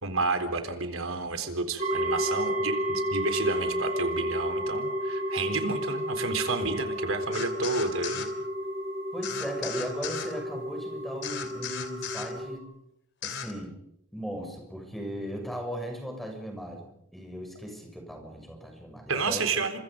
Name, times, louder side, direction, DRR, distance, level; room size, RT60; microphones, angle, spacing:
voice 1, 0.0-8.3 19.1-19.8, right 3 dB, 85° right, 7 dB, 4.0 m, -30 dB
sound 1, 1.8-12.6, equal, 30° right, 2.7 m, -31 dB
sound 2, 7.3-8.3 9.2-10.3 11.2-12.3 13.2-13.5, left 7 dB, 60° left, 3.0 m, -36 dB
voice 2, 9.1-12.7 13.2-13.8 14.1-19.6, equal, ahead, 3 dB, 6.9 m, -37 dB
29.5 x 26.5 x 5.3 m, 0.78 s
head